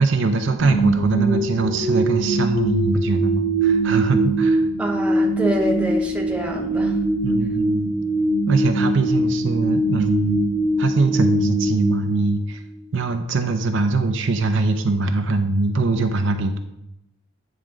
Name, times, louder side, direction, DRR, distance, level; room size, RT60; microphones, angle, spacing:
voice 1, 0.0-4.6 7.2-8.0 8.5-10.4 10.8-12.6 12.9-16.6, right 3 dB, 60° right, 6 dB, 0.6 m, -22 dB
sound 1, 0.6-12.7, right 2 dB, 55° left, 1.6 m, -22 dB
voice 2, 4.8-7.0, equal, 5° right, 0 dB, 0.9 m, -26 dB
9.2 x 3.6 x 5.0 m, 0.89 s
head